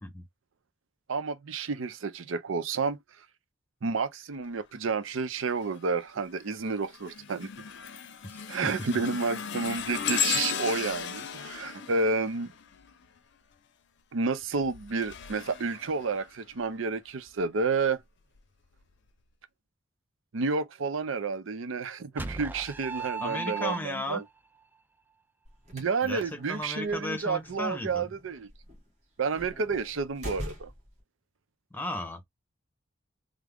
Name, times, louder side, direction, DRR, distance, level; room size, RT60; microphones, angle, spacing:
voice 1, 1.1-3.0 3.8-7.5 8.5-12.5 14.1-18.0 20.3-24.2 25.7-28.5 29.2-30.7, right 4 dB, 80° right, 0.5 m, -30 dB
sound 1, 5.5-5.9 6.4-13.2 14.4-16.6 17.3-17.5 18.4-18.5, left 7 dB, 60° left, 0.6 m, -36 dB
voice 2, 8.2-8.9 23.2-24.2 26.0-28.1 31.7-32.2, left 1 dB, 10° left, 0.8 m, -35 dB
sound 2, 22.2-24.3, right 5 dB, 10° right, 0.3 m, -36 dB
sound 3, 25.4-31.0, equal, 35° right, 1.6 m, -45 dB
3.6 x 2.0 x 3.4 m
head